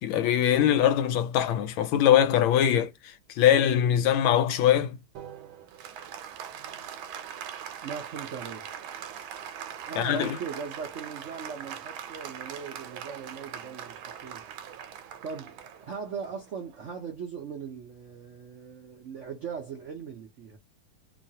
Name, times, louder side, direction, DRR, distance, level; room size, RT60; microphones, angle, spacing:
voice 1, 0.0-2.9 3.4-5.0 10.0-10.3, left 10 dB, 80° left, 1.3 m, -22 dB
Applause, 5.2-17.0, right 9 dB, 90° right, 1.4 m, -41 dB
voice 2, 7.8-8.7 9.9-14.9 15.2-20.6, right 6 dB, 70° right, 0.7 m, -39 dB
3.1 x 2.3 x 2.7 m
omnidirectional pair, 2.2 m